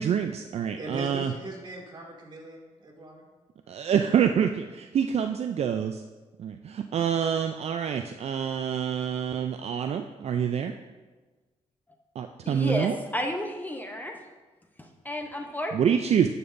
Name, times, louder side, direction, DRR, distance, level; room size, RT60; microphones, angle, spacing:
voice 1, 0.0-1.3 3.7-6.0 6.4-10.7 12.2-13.0 15.7-16.3, right 8 dB, 55° right, 6 dB, 0.4 m, -26 dB
voice 2, 0.8-3.3, right 1 dB, 35° right, -2 dB, 2.1 m, -40 dB
voice 3, 12.4-14.2 14.8-15.8, left 1 dB, 15° left, 3 dB, 0.7 m, -32 dB
11.0 x 6.8 x 2.6 m, 1.3 s
cardioid pair, 80°, 12 cm